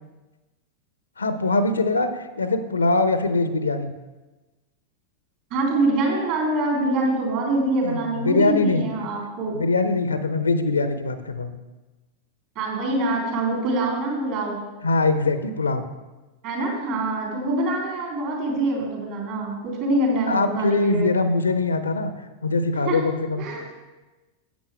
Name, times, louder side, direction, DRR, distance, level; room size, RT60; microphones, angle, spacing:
voice 1, 1.2-3.9 7.8-8.9 9.5-11.5 14.8-15.9 20.3-22.1 22.4-23.5, left 3 dB, 75° left, 10 dB, 0.6 m, -22 dB
voice 2, 5.5-9.6 12.5-14.6 16.4-21.1 22.8-23.0 23.4-23.6, right 2 dB, 45° right, -2 dB, 3.3 m, -24 dB
11.5 x 8.5 x 3.4 m, 1.1 s
figure-of-eight pair, 90°, 0 cm